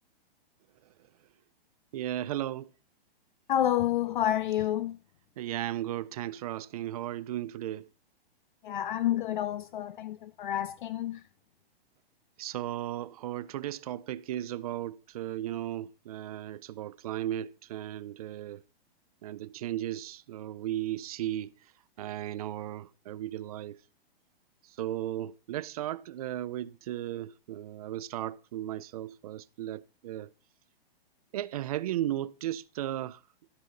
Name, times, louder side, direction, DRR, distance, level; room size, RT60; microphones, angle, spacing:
voice 1, 1.9-2.7 5.4-7.9 12.4-18.6 19.2-21.5 22.0-23.8 24.7-30.3 31.3-33.2, right 13 dB, 40° right, 0.4 m, -35 dB
voice 2, 3.5-4.9 8.6-11.2, left 11 dB, 55° left, 0.5 m, -29 dB
12.5 x 5.6 x 3.8 m
hypercardioid pair, 155°, 30 cm